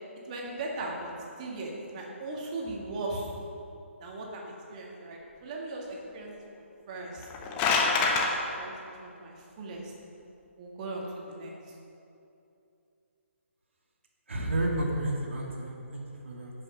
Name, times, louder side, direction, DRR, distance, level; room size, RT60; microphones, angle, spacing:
voice 1, 0.3-1.1 1.4-3.3 4.0-7.3 8.1-9.9 10.6-11.5, right 2 dB, 35° right, -2 dB, 1.9 m, -38 dB
sound 1, 7.1-8.3, left 4 dB, 20° left, 1.0 m, -25 dB
voice 2, 14.3-16.5, right 1 dB, 65° right, -1 dB, 2.1 m, -31 dB
10.5 x 6.2 x 5.8 m, 2.7 s
figure-of-eight pair, 135°, 7 cm